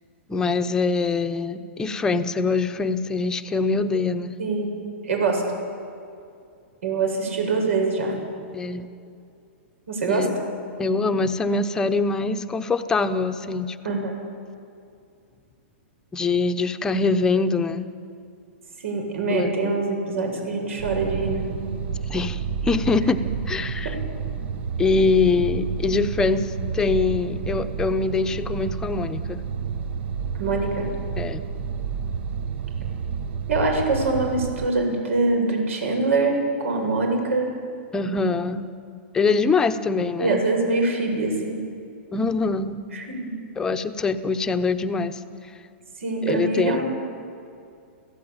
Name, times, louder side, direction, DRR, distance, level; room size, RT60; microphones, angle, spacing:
voice 1, 0.3-4.3 8.5-8.9 10.1-10.3 10.8-14.1 16.1-17.9 19.3-19.5 22.1-23.9 24.8-29.4 31.2-31.4 37.9-38.7 39.1-40.4 42.1-42.8 43.6-45.2 46.2-46.8, left 4 dB, 10° left, 7 dB, 0.9 m, -24 dB
voice 2, 4.4-4.8 5.0-5.4 6.8-8.1 9.9-10.3 13.8-14.1 18.8-21.4 30.3-30.9 33.5-37.5 40.2-41.6 42.9-43.3 46.0-46.8, right 3 dB, 90° right, 3 dB, 7.6 m, -24 dB
sound 1, 20.8-34.7, right 6 dB, 55° right, 1.1 m, -30 dB
27.0 x 16.0 x 9.0 m, 2.4 s
hypercardioid pair, 160°, 7 cm